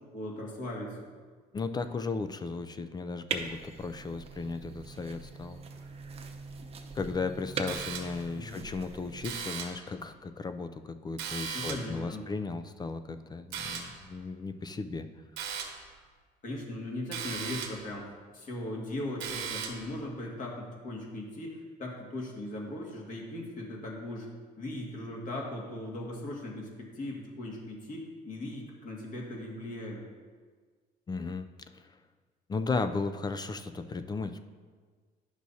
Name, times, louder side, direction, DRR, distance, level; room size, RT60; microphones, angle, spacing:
voice 1, 0.1-1.0 8.3-8.6 11.5-12.5 16.4-24.3 24.6-30.0, left 1 dB, 50° left, -2 dB, 2.0 m, -39 dB
voice 2, 1.5-5.6 6.9-15.1 31.1-31.5 31.7-31.9 32.5-34.4, left 4 dB, 25° left, 9 dB, 0.4 m, -35 dB
sound 1, 3.3-9.4, right 4 dB, 35° right, 0.7 m, -41 dB
sound 2, 7.7-8.3 9.2-9.9 11.2-12.0 13.5-14.1 15.4-15.9 17.1-17.9 19.2-19.9, right 7 dB, 85° right, 1.1 m, -38 dB
10.5 x 6.2 x 2.7 m, 1.5 s
cardioid pair, 110°, 17 cm